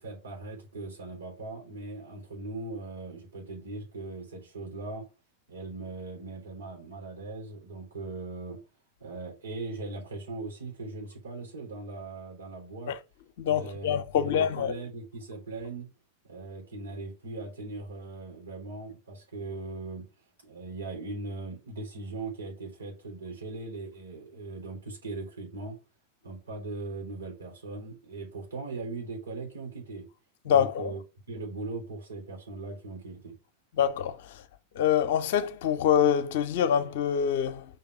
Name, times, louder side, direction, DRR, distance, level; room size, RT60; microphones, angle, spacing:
voice 1, 0.0-5.1 5.5-8.6 9.0-13.0 13.5-15.9 16.2-20.1 20.4-25.8 26.2-30.1 30.4-31.0 31.3-33.4, right 3 dB, 75° right, 3.7 m, -39 dB
voice 2, 13.4-14.7 30.5-30.9 33.8-34.2 34.8-37.7, left 9 dB, 55° left, 0.7 m, -25 dB
5.5 x 3.5 x 5.5 m
figure-of-eight pair, 90°, 0 cm